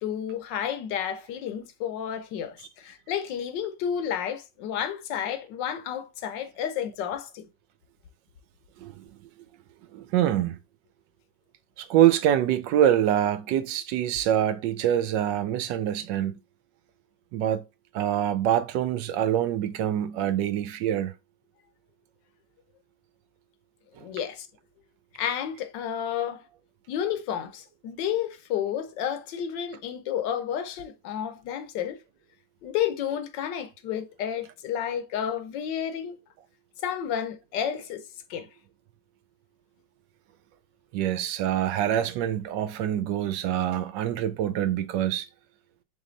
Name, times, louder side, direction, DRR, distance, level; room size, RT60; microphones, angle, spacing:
voice 1, 0.0-7.4 24.0-24.5 25.2-26.4 26.9-32.0 32.6-36.2 36.8-38.0 38.3-38.5, left 9 dB, 80° left, 1.4 m, -31 dB
voice 2, 9.9-10.6 11.8-16.4 17.3-17.6 17.9-21.1 40.9-45.2, right 11 dB, 90° right, 1.3 m, -25 dB
3.8 x 3.3 x 3.8 m
omnidirectional pair, 1.9 m